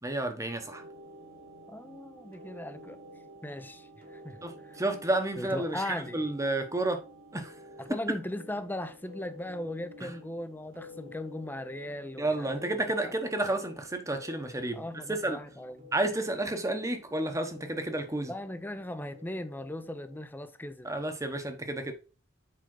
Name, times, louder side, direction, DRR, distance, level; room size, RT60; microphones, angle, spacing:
voice 1, 0.0-0.8 4.4-7.0 7.3-7.5 10.0-10.1 12.2-15.4 15.9-18.3 20.8-21.9, right 2 dB, 15° right, 1.0 m, -31 dB
sound 1, 0.6-20.3, left 1 dB, 45° right, 1.3 m, -51 dB
voice 2, 1.7-3.0 3.4-4.8 5.4-6.2 7.8-13.1 14.7-15.9 18.3-20.9, left 1 dB, 10° left, 0.6 m, -38 dB
7.7 x 5.0 x 3.9 m
head